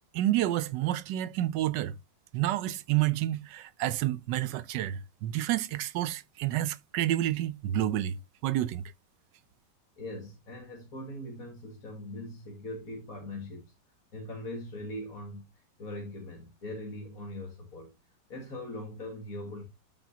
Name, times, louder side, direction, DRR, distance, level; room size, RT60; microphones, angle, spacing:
voice 1, 0.1-1.9 2.3-8.2 8.4-8.8, right 13 dB, 80° right, 1.3 m, -29 dB
voice 2, 10.0-13.7 14.1-15.4 15.8-17.9 18.3-19.6, left 1 dB, 55° left, 2.3 m, -41 dB
13.0 x 5.0 x 2.8 m
omnidirectional pair, 1.9 m